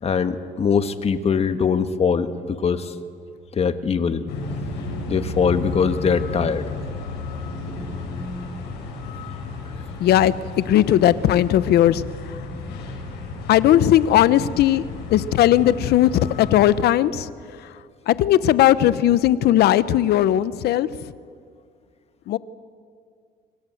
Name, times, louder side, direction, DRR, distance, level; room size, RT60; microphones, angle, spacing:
voice 1, 0.0-2.9 3.6-4.2 5.1-6.6, left 6 dB, 40° left, 9 dB, 1.6 m, -22 dB
sound 1, 4.3-16.8, left 3 dB, 90° left, 6.8 m, -33 dB
voice 2, 10.0-10.3 10.7-12.0 13.5-14.8 15.1-16.1 16.4-17.3 18.1-20.9 22.3-22.4, left 12 dB, 70° left, 16 dB, 0.9 m, -17 dB
26.0 x 24.5 x 8.0 m, 2.2 s
cardioid pair, 110°, 17 cm